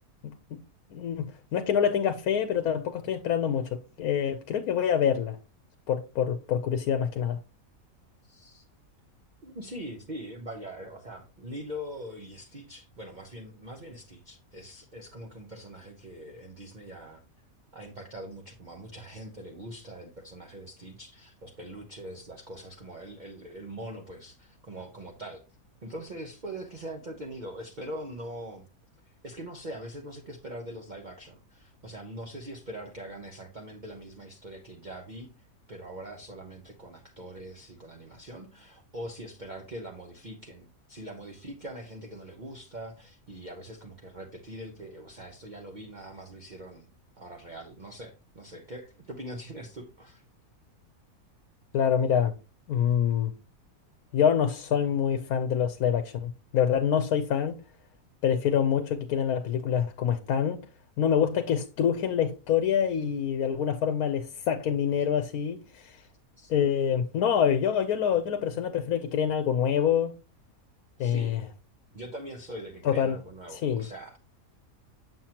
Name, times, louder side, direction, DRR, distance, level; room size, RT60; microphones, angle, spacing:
voice 1, 0.9-5.4 5.9-7.4 51.7-52.3 52.7-53.3 54.1-57.6 58.2-60.6 61.0-66.0 66.5-70.1 71.0-71.4 72.8-73.2 73.5-73.8, left 8 dB, 80° left, 1.1 m, -26 dB
voice 2, 8.2-8.6 9.4-17.2 17.7-25.4 25.8-28.6 29.0-46.9 47.2-50.2 66.0-66.1 66.4-66.5 71.0-71.4 71.9-74.2, right 1 dB, 35° right, 1.0 m, -42 dB
7.5 x 7.3 x 2.9 m
omnidirectional pair, 1.5 m